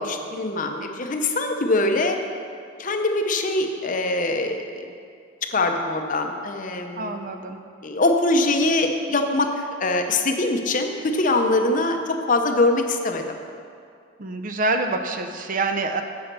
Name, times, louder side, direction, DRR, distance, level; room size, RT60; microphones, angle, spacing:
voice 1, 0.0-2.2 2.8-4.9 5.5-7.2 7.8-13.4, left 2 dB, 40° left, 4 dB, 0.6 m, -23 dB
voice 2, 7.0-7.6 14.2-16.0, right 3 dB, 40° right, 6 dB, 0.5 m, -26 dB
9.0 x 5.6 x 6.7 m, 2.3 s
head